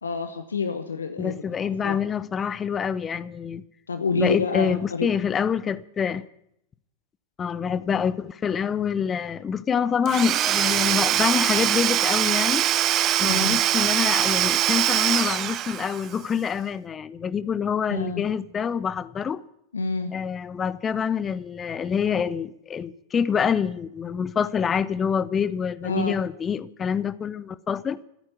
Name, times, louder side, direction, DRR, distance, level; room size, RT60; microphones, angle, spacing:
voice 1, 0.0-1.3 1.8-2.0 3.9-5.1 13.2-13.6 17.9-18.3 19.7-20.1 25.8-26.2, left 4 dB, 75° left, 1.0 m, -27 dB
voice 2, 1.2-3.6 4.1-6.2 7.4-12.7 13.2-19.4 20.1-28.0, left 7 dB, 20° left, 0.7 m, -26 dB
Domestic sounds home sounds / Tools, 10.1-16.2, right 12 dB, 30° right, 0.6 m, -23 dB
15.0 x 8.8 x 9.4 m
figure-of-eight pair, 90°, 0 cm